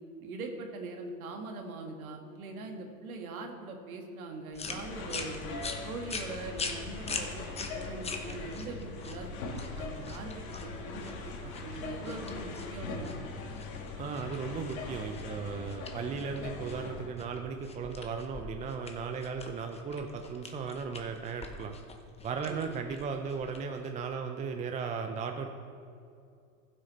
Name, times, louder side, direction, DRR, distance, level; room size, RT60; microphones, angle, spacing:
voice 1, 0.2-5.4 5.8-7.4 7.7-9.4 9.7-13.3 22.5-22.7, right 3 dB, 85° right, 3 dB, 1.7 m, -42 dB
sound 1, 4.5-24.1, left 4 dB, 15° left, 0.9 m, -43 dB
sound 2, 4.6-17.1, left 3 dB, 70° left, 2.0 m, -41 dB
voice 2, 14.0-21.7 22.2-25.5, right 5 dB, 20° right, 5 dB, 0.5 m, -36 dB
15.0 x 6.4 x 4.2 m, 2.5 s
supercardioid pair, 115°, 42 cm